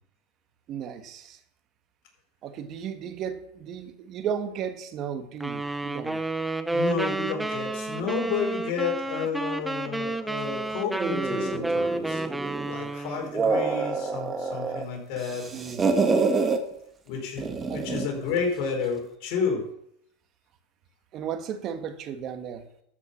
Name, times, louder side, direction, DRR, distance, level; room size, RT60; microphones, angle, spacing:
voice 1, 0.7-1.4 2.4-6.2 15.5-15.8 17.7-17.9 21.1-22.7, right 8 dB, 40° right, 8 dB, 1.6 m, -34 dB
sound 1, 5.4-13.3, right 2 dB, 5° right, 0.7 m, -30 dB
voice 2, 6.7-12.2 12.7-15.5 17.1-19.7, left 5 dB, 60° left, 1 dB, 4.6 m, -31 dB
sound 2, 11.0-12.7 13.2-14.8 15.2-16.6 17.4-18.2, right 4 dB, 20° right, 1.5 m, -27 dB
13.0 x 6.0 x 7.0 m, 0.72 s
supercardioid pair, 125°, 0 cm